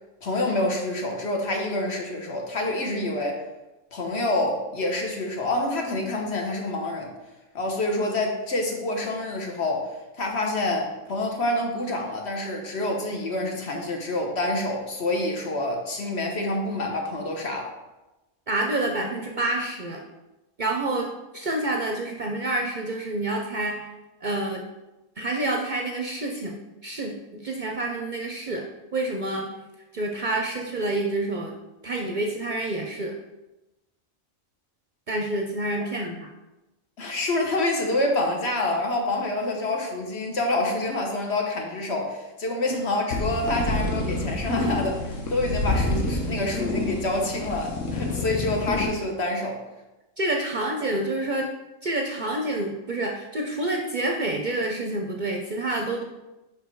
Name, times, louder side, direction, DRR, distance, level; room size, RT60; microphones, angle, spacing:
voice 1, 0.2-3.4 3.9-7.1 7.5-17.7 37.0-49.6, left 2 dB, 55° left, 1 dB, 1.3 m, -27 dB
voice 2, 18.5-20.0 20.6-21.1 21.3-23.9 24.2-24.6 25.2-26.6 26.8-28.6 28.9-29.5 29.9-31.5 31.8-33.1 35.1-36.3 50.2-51.5 51.8-56.0, right 2 dB, 45° right, 1 dB, 0.6 m, -28 dB
sound 1, 43.1-48.9, left 2 dB, 75° left, 1.3 m, -28 dB
5.4 x 5.2 x 4.6 m, 1.0 s
omnidirectional pair, 1.3 m